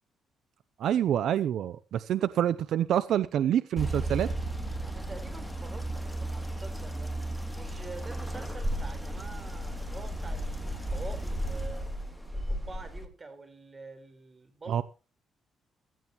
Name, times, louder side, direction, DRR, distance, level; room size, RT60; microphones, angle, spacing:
voice 1, 0.8-4.3 14.7-14.8, right 10 dB, 70° right, 0.6 m, -27 dB
sound 1, 3.8-13.0, right 1 dB, ahead, 2.8 m, -34 dB
voice 2, 4.8-7.2 7.5-11.9 12.3-14.8, right 3 dB, 30° right, 4.3 m, -46 dB
16.5 x 14.0 x 3.1 m
cardioid pair, 90°, 0 cm